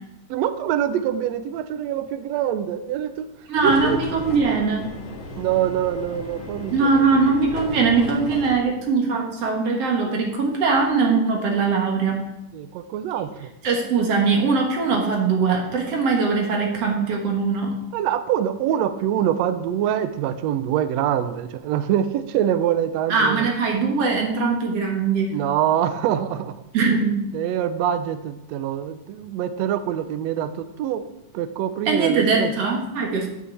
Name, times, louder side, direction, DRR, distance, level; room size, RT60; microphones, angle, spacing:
voice 1, 0.3-3.3 3.6-4.0 5.4-6.9 12.5-13.5 17.9-23.5 25.3-26.5 27.3-31.0 31.3-32.5, right 10 dB, 80° right, 10 dB, 1.6 m, -24 dB
sound 1, 3.5-8.6, left 2 dB, 50° left, 1.9 m, -35 dB
voice 2, 3.5-4.9 6.7-12.2 13.6-17.7 23.1-25.3 26.7-27.2 31.9-33.3, right 4 dB, 55° right, 1 dB, 2.2 m, -21 dB
7.8 x 6.6 x 8.2 m, 0.91 s
omnidirectional pair, 3.6 m